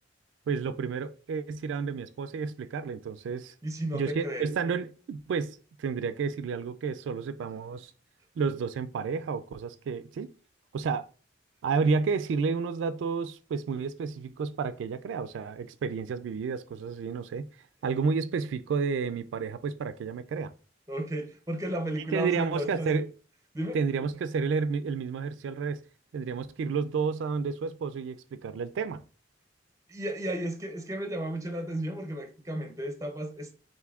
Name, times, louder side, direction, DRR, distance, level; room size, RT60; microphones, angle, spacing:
voice 1, 0.5-3.5 3.9-7.9 8.4-10.3 10.7-11.1 11.6-17.5 17.8-20.5 22.1-23.1 23.7-25.8 26.1-29.0, right 5 dB, 90° right, 0.3 m, -31 dB
voice 2, 3.6-4.5 20.9-23.0 23.5-23.8 29.9-33.5, right 1 dB, 15° right, 0.6 m, -33 dB
6.8 x 2.6 x 2.3 m
head